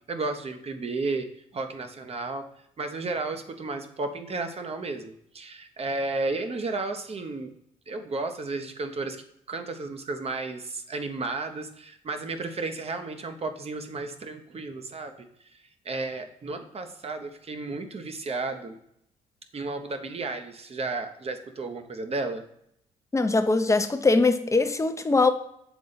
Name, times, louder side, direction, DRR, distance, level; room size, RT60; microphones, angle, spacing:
voice 1, 0.1-1.3 1.5-2.5 2.8-7.5 7.9-15.3 15.5-18.8 19.5-22.5, right 3 dB, 40° right, 0.9 m, -33 dB
voice 2, 23.1-25.3, left 3 dB, 20° left, 0.7 m, -22 dB
7.0 x 3.7 x 4.0 m
supercardioid pair, 60°, 16 cm